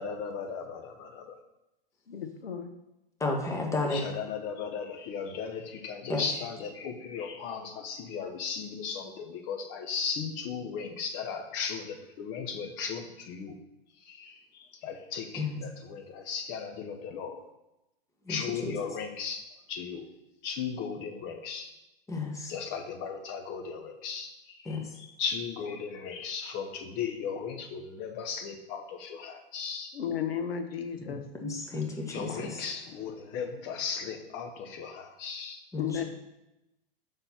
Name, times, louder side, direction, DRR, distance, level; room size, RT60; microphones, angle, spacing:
voice 1, 0.0-1.4 3.9-13.5 14.0-17.4 18.3-20.1 20.4-21.7 22.5-30.0 32.1-35.6, left 6 dB, 40° left, 6 dB, 1.1 m, -36 dB
voice 2, 2.1-2.7 29.9-31.2 35.8-36.0, left 8 dB, 80° left, 8 dB, 0.7 m, -33 dB
voice 3, 3.2-4.0 6.1-6.2 15.3-15.6 18.2-18.8 22.1-22.5 24.6-24.9 31.4-32.6 35.7-36.0, left 3 dB, 10° left, 1 dB, 1.1 m, -32 dB
5.3 x 4.0 x 5.8 m, 0.93 s
hypercardioid pair, 110°, 29 cm